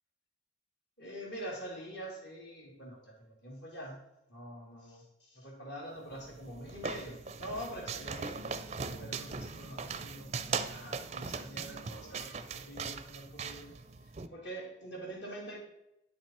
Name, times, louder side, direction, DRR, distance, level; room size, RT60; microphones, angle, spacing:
voice 1, 1.0-4.0 4.3-13.7 14.3-15.6, right 1 dB, 60° left, -1 dB, 2.7 m, -45 dB
sound 1, 6.1-14.3, right 5 dB, 35° right, 0.4 m, -40 dB
9.9 x 6.0 x 4.5 m, 0.86 s
head